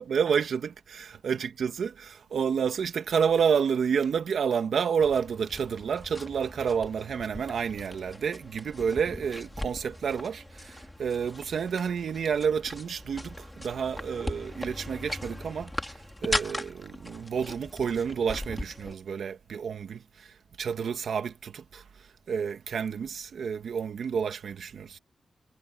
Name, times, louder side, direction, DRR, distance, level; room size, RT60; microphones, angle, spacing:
voice 1, 0.0-25.0, right 7 dB, 70° right, 1.9 m, -30 dB
sound 1, 5.0-19.0, left 1 dB, 10° left, 2.9 m, -39 dB
wide cardioid pair, 120°, 0 cm